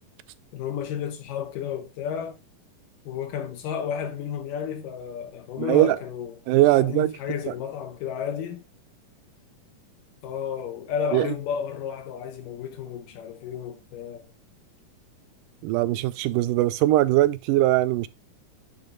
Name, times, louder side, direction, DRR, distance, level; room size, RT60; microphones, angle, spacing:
voice 1, 0.5-2.4 3.0-6.4 6.7-8.6 10.2-14.2, left 8 dB, 80° left, 2.7 m, -32 dB
voice 2, 5.6-6.0 6.5-7.1 7.5-7.6 11.1-11.3 15.6-18.1, right 16 dB, 80° right, 2.2 m, -21 dB
10.0 x 3.8 x 3.7 m
omnidirectional pair, 3.8 m